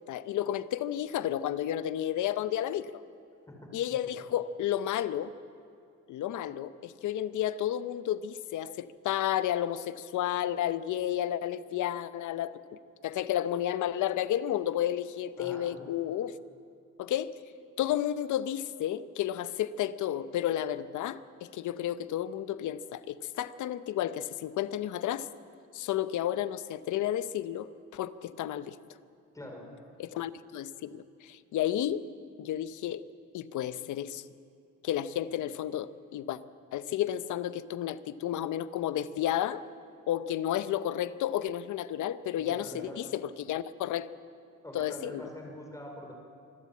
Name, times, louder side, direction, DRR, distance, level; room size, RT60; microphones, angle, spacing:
voice 1, 0.1-3.0 3.7-5.3 6.1-12.5 13.0-16.3 17.0-17.3 17.8-25.3 25.7-28.8 30.0-32.0 32.4-33.0 33.3-34.2 34.8-36.4 36.7-39.6 40.1-44.1 44.7-45.2, left 11 dB, 75° left, 15 dB, 0.8 m, -32 dB
voice 2, 15.4-15.9 29.3-29.6 42.4-43.0 44.6-46.1, left 1 dB, 10° left, 1 dB, 5.0 m, -44 dB
25.5 x 12.5 x 8.5 m, 2.4 s
cardioid pair, 90°, 30 cm